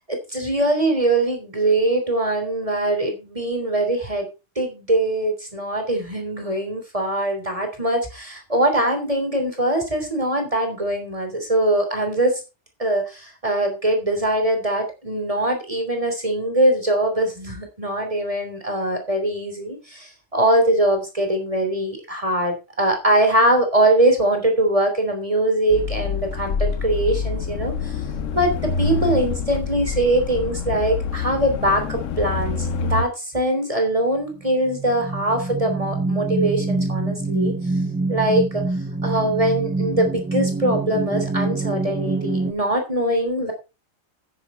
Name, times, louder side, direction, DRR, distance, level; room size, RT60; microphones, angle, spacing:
voice 1, 0.1-4.3 4.6-12.4 12.8-28.0 28.3-37.5 38.1-38.6 39.0-43.5, right 1 dB, 25° right, 4 dB, 3.5 m, -22 dB
sound 1, 25.7-33.0, left 5 dB, 80° left, 1.2 m, -26 dB
sound 2, 34.2-42.5, right 3 dB, 10° right, 0.6 m, -25 dB
9.9 x 9.7 x 4.4 m, 0.29 s
omnidirectional pair, 1.3 m